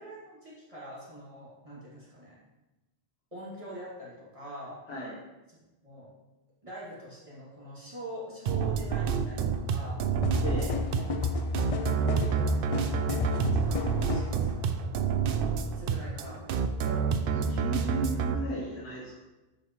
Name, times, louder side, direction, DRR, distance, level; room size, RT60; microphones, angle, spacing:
voice 1, 0.0-2.4 3.3-4.8 5.5-6.1 6.6-10.0 10.5-10.8 12.2-14.7 15.7-16.4, right 1 dB, 30° right, -8 dB, 2.3 m, -44 dB
sound 1, 8.5-18.3, right 6 dB, 65° right, 0.7 m, -29 dB
sound 2, 10.2-14.4, left 3 dB, 45° left, 0.5 m, -31 dB
voice 2, 17.3-19.1, right 1 dB, 80° left, -4 dB, 1.4 m, -36 dB
7.9 x 6.8 x 3.1 m, 1.0 s
omnidirectional pair, 1.1 m